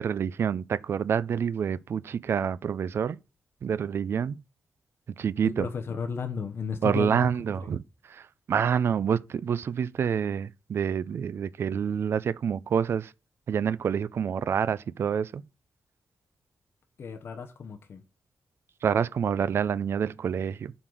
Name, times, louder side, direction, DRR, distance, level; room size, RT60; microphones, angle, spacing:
voice 1, 0.0-3.2 3.6-4.4 5.2-5.7 6.8-7.8 8.1-8.2 8.5-13.1 13.5-15.4 18.8-20.7, right 7 dB, 55° right, 0.4 m, -27 dB
voice 2, 5.6-7.3 17.0-18.0, left 5 dB, 50° left, 0.8 m, -33 dB
7.6 x 3.9 x 6.2 m
wide cardioid pair, 165°, 5 cm